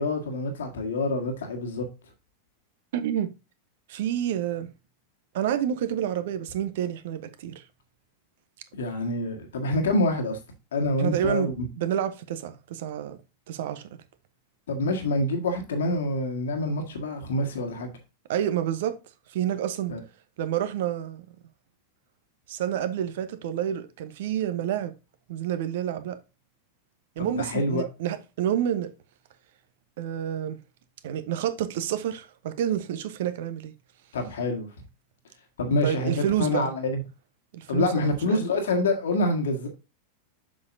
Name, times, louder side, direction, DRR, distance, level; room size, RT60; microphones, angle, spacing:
voice 1, 0.0-1.8 8.8-10.4 10.7-11.7 14.7-17.9 19.9-20.0 27.2-27.8 34.1-34.7 35.6-37.0 37.7-39.7, left 2 dB, 65° left, 1.6 m, -26 dB
voice 2, 2.9-3.3 3.9-4.7 5.3-7.6 11.0-13.2 13.5-13.8 18.3-19.0 19.3-19.9 20.4-21.2 22.5-24.9 25.3-26.2 27.2-28.9 30.0-30.6 31.0-33.7 35.8-36.7 37.5-38.4, right 10 dB, 55° right, 1.0 m, -29 dB
7.5 x 6.3 x 2.6 m
figure-of-eight pair, 90°, 0 cm